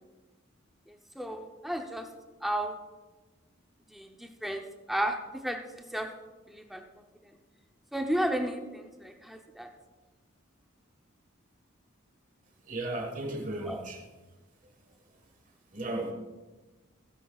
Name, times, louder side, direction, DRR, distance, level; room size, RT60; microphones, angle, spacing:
voice 1, 1.2-2.1 2.4-2.8 3.9-6.1 6.5-6.8 7.9-9.7 13.7-13.8, right 1 dB, ahead, 4 dB, 0.6 m, -33 dB
voice 2, 12.7-14.0 15.7-16.1, right 2 dB, 40° right, 2 dB, 1.5 m, -35 dB
16.5 x 10.5 x 2.4 m, 1.2 s
head